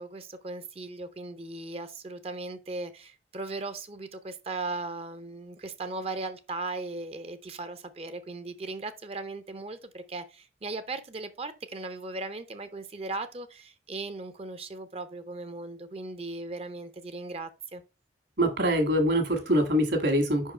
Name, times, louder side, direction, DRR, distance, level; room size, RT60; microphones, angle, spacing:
voice 1, 0.0-17.8, right 3 dB, 30° right, 0.5 m, -37 dB
voice 2, 18.4-20.5, equal, 70° right, 1.8 m, -24 dB
5.3 x 4.6 x 4.2 m
head